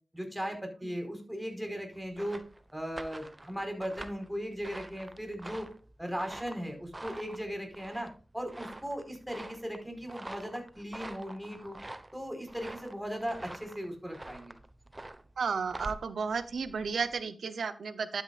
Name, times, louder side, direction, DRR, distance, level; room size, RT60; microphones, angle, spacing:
voice 1, 0.1-2.4 2.7-5.7 6.0-8.1 8.3-11.8 12.1-14.6, equal, 5° right, 4 dB, 4.7 m, -37 dB
sound 1, 1.9-17.2, right 2 dB, 30° right, 1.1 m, -46 dB
voice 2, 15.4-18.2, right 5 dB, 90° right, 13 dB, 0.8 m, -33 dB
12.0 x 9.5 x 2.5 m, 0.36 s
cardioid pair, 40°, 0 cm